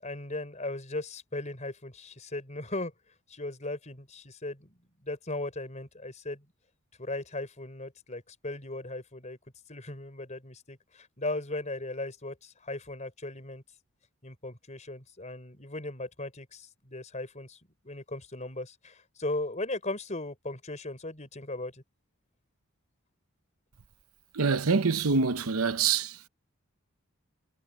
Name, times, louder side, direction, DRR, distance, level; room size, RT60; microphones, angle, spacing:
voice 1, 0.0-2.9 3.3-6.5 7.0-9.4 9.7-13.6 14.2-17.6 17.8-21.8, left 2 dB, 30° left, 4.7 m, -37 dB
voice 2, 24.3-26.2, right 5 dB, 80° right, 0.9 m, -25 dB
head